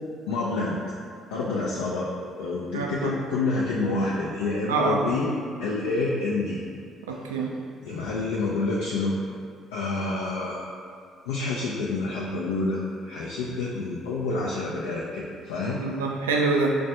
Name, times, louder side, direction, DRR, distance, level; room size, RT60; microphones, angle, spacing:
voice 1, 0.3-0.8 1.3-2.1 2.4-5.3 5.6-6.6 7.8-9.2 9.7-10.6 11.3-15.8, left 3 dB, 80° left, -5 dB, 0.3 m, -28 dB
voice 2, 2.7-3.1 4.7-5.0 7.1-7.5 15.8-16.8, right 3 dB, 85° right, 0 dB, 0.3 m, -25 dB
5.0 x 2.2 x 2.7 m, 2.3 s
hypercardioid pair, 50°, 0 cm